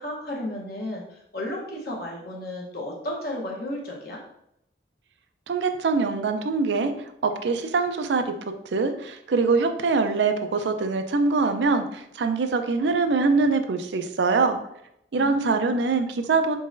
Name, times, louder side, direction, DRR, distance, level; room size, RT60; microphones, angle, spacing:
voice 1, 0.0-4.2 15.2-15.4 15.7-15.8, left 1 dB, 55° left, -1 dB, 1.0 m, -33 dB
voice 2, 5.5-6.9 7.2-8.3 8.7-14.6 15.1-16.6, right 4 dB, 75° right, 7 dB, 0.4 m, -23 dB
4.1 x 3.8 x 2.5 m, 0.77 s
head